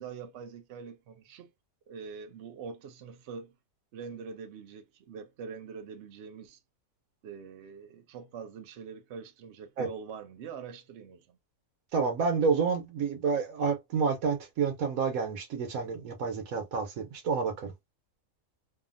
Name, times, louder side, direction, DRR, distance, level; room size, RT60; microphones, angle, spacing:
voice 1, 0.0-1.5 1.9-3.5 3.9-6.6 7.2-11.4, right 6 dB, 60° right, 0.8 m, -44 dB
voice 2, 11.9-17.7, right 5 dB, 80° right, 1.2 m, -29 dB
2.7 x 2.5 x 2.4 m
omnidirectional pair, 1.4 m